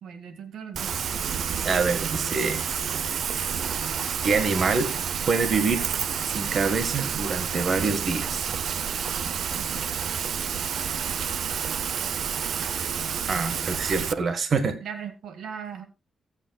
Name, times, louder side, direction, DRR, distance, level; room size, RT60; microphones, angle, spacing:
voice 1, 0.0-0.9 9.5-9.9 14.8-15.9, right 7 dB, 85° right, 8 dB, 2.0 m, -38 dB
Rain, 0.7-14.1, right 7 dB, 65° right, 0.7 m, -29 dB
voice 2, 1.6-2.6 4.2-4.9 5.3-5.8 6.3-8.5 13.3-14.8, right 4 dB, 45° right, 7 dB, 1.6 m, -25 dB
22.0 x 8.2 x 2.4 m, 0.27 s
wide cardioid pair, 135°, 0 cm